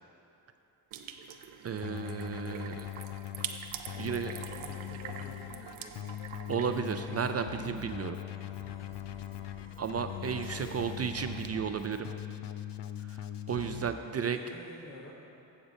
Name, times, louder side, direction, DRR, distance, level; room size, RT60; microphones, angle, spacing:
sound 1, 0.9-7.5, right 9 dB, 85° right, 0.6 m, -45 dB
voice 1, 1.6-2.9 4.0-4.3 6.5-8.2 9.8-12.1 13.1-13.2 13.5-14.4, right 6 dB, 35° right, 8 dB, 0.4 m, -33 dB
Keyboard (musical), 1.8-13.9, left 11 dB, 65° left, 0.5 m, -41 dB
voice 2, 3.9-6.2 10.3-11.0 13.9-15.1, left 1 dB, 45° left, -4 dB, 1.3 m, -50 dB
sound 2, 7.4-12.4, equal, 25° left, 1.3 m, -53 dB
7.9 x 6.9 x 5.2 m, 2.9 s
cardioid pair, 65°, 46 cm